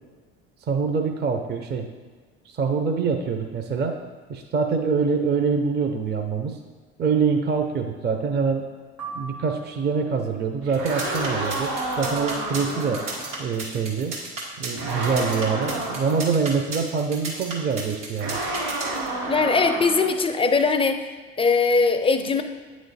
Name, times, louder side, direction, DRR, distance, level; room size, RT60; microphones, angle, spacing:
voice 1, 0.7-1.9 2.5-3.9 4.3-6.6 7.0-8.6 9.1-13.0 13.4-14.1 14.6-18.4, right 5 dB, 30° right, 4 dB, 0.6 m, -25 dB
sound 1, 9.0-10.3, right 4 dB, 45° right, 1.1 m, -39 dB
sound 2, 10.6-13.4 14.8-16.2 18.2-20.2, right 2 dB, 65° right, 1.9 m, -30 dB
sound 3, 10.7-19.1, right 3 dB, 85° right, 1.6 m, -34 dB
voice 2, 19.3-21.0 21.4-22.4, left 4 dB, 15° left, 7 dB, 0.5 m, -20 dB
8.7 x 3.1 x 4.1 m, 1.5 s
hypercardioid pair, 75°, 34 cm